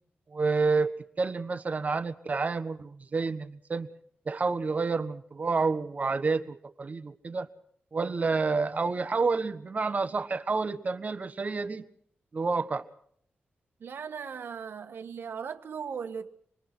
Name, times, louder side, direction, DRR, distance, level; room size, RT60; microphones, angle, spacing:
voice 1, 0.3-3.9 4.3-7.5 7.9-11.8 12.3-12.8, right 4 dB, 40° right, 1.4 m, -29 dB
voice 2, 13.8-16.3, right 6 dB, 75° right, 1.5 m, -38 dB
26.0 x 20.5 x 6.2 m
cardioid pair, 90°, 4 cm